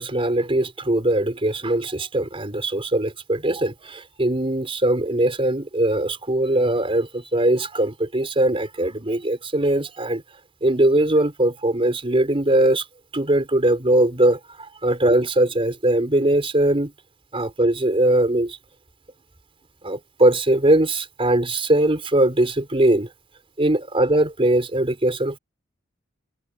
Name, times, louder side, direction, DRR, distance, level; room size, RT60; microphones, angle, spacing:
voice 1, 0.0-10.2 10.6-12.8 13.1-14.4 14.8-16.9 17.3-18.6 19.8-23.1 23.6-25.4, right 1 dB, 30° right, 4.1 m, -20 dB
head